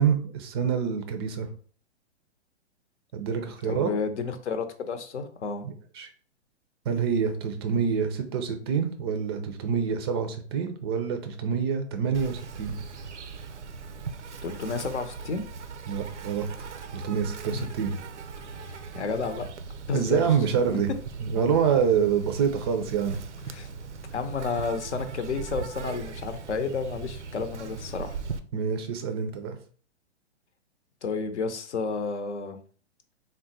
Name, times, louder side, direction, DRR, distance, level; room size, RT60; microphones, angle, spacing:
voice 1, 0.0-1.5 3.1-3.9 5.6-6.1 6.9-12.8 15.9-16.5 16.9-17.9 19.9-20.9 21.2-23.2 28.5-29.6, right 7 dB, 25° right, 6 dB, 0.4 m, -26 dB
voice 2, 3.6-5.7 14.4-15.4 17.5-17.7 18.7-19.5 19.9-20.2 23.5-23.7 24.1-28.2 31.0-32.6, left 5 dB, 75° left, 9 dB, 0.7 m, -31 dB
Insect, 12.1-28.4, right 5 dB, 90° right, 0.5 m, -39 dB
3.7 x 2.1 x 4.0 m, 0.43 s
figure-of-eight pair, 120°, 35 cm